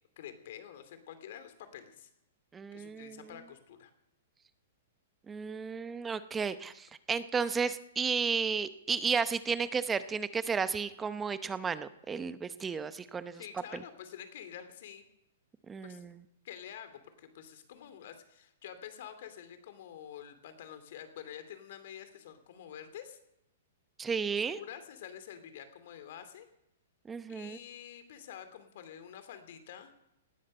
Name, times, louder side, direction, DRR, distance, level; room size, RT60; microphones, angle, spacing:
voice 1, 0.2-2.1 2.7-3.9 13.4-15.0 15.8-16.0 16.4-23.2 24.3-26.5 27.3-29.9, left 9 dB, 55° left, 9 dB, 2.7 m, -48 dB
voice 2, 2.5-3.3 5.3-13.4 13.7-13.8 15.7-16.2 24.0-24.6 27.1-27.6, right 5 dB, 10° right, 13 dB, 0.7 m, -33 dB
18.5 x 13.0 x 5.5 m, 0.83 s
hypercardioid pair, 160°, 0 cm